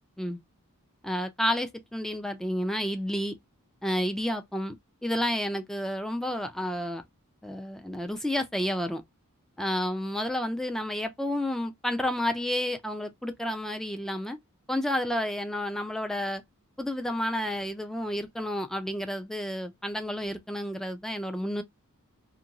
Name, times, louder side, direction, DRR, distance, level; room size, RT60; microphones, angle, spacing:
voice 1, 1.0-3.3 3.8-4.8 5.0-7.0 7.4-9.0 9.6-14.4 14.7-16.4 16.8-21.6, left 1 dB, ahead, 0.3 m, -30 dB
2.5 x 2.3 x 2.7 m
head